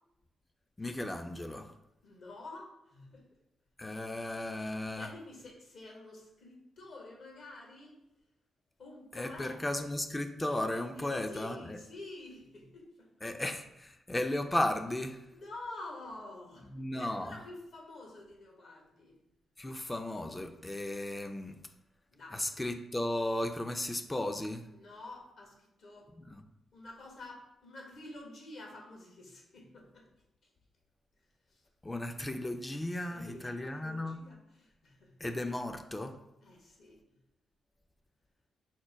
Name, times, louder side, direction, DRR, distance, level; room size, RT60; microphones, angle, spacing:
voice 1, 0.8-1.7 3.8-5.1 9.1-11.8 13.2-15.2 16.7-17.4 19.6-21.6 22.3-24.7 26.3-26.4 31.8-34.2 35.2-36.1, left 1 dB, 20° left, 6 dB, 0.5 m, -35 dB
voice 2, 2.0-3.3 4.9-8.0 8.8-9.8 10.9-13.1 15.3-19.2 22.1-22.5 24.7-26.1 26.7-30.1 30.4-30.5 31.5-31.7 32.9-35.2 36.4-37.0, left 2 dB, 70° left, -1 dB, 1.2 m, -49 dB
4.3 x 2.2 x 4.5 m, 0.87 s
supercardioid pair, 45°, 0 cm